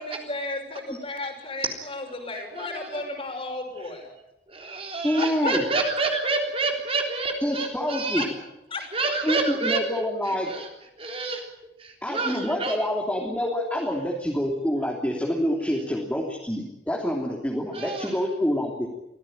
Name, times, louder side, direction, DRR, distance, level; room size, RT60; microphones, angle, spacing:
voice 1, 0.0-4.1 5.4-5.5 8.2-8.3 8.7-8.8, left 2 dB, 35° left, 3 dB, 6.1 m, -33 dB
voice 2, 2.6-3.0 4.5-8.3 8.9-9.8 10.3-10.7 11.0-11.5 11.8-12.8 17.7-18.1, right 3 dB, 35° right, 2 dB, 3.6 m, -28 dB
voice 3, 5.0-5.6 7.4-8.3 9.2-10.5 12.0-18.9, equal, 10° left, -1 dB, 3.2 m, -27 dB
24.5 x 16.5 x 9.1 m, 0.90 s
head